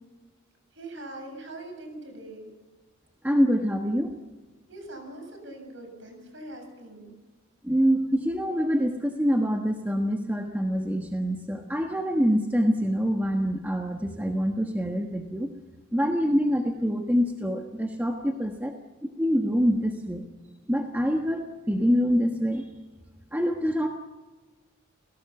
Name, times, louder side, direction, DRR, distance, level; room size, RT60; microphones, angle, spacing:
voice 1, 0.7-2.5 4.7-7.1, right 1 dB, 60° right, 4 dB, 7.3 m, -42 dB
voice 2, 3.2-4.1 7.6-15.5 15.9-18.7 19.2-20.2 20.7-22.7 23.3-23.9, equal, 10° right, 2 dB, 1.3 m, -25 dB
29.5 x 18.5 x 7.1 m, 1.2 s
head